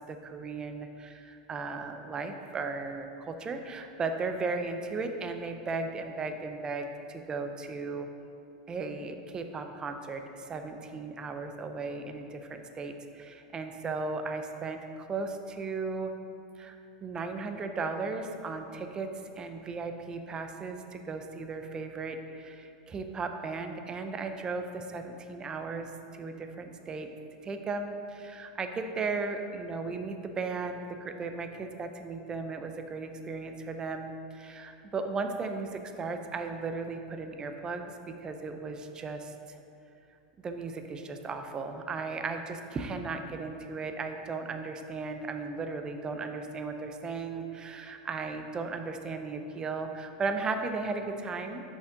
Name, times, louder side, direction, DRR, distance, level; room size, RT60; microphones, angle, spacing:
voice 1, 0.0-8.1 8.7-16.1 16.6-16.8 17.0-19.1 19.4-27.1 27.4-39.6 40.4-51.6, right 4 dB, 20° right, 6 dB, 0.5 m, -36 dB
6.9 x 5.2 x 3.8 m, 2.7 s
supercardioid pair, 135°, 4 cm